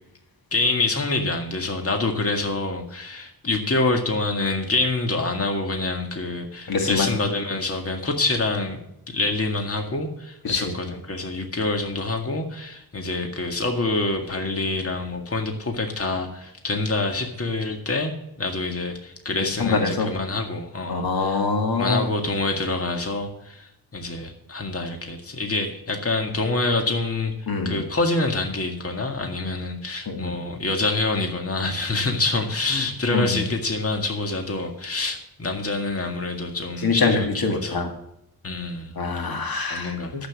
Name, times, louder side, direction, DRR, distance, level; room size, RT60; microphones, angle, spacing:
voice 1, 0.5-8.8 9.1-18.1 18.4-21.4 21.8-27.3 27.7-37.9 38.4-38.9 39.7-40.3, left 2 dB, 35° left, 4 dB, 2.0 m, -26 dB
voice 2, 6.7-7.1 10.4-10.7 19.4-20.1 20.9-22.1 27.5-27.8 30.1-30.4 33.1-33.4 36.8-37.9 39.0-40.3, left 4 dB, 65° left, 5 dB, 2.1 m, -24 dB
12.0 x 8.2 x 6.3 m, 0.81 s
wide cardioid pair, 105°, 38 cm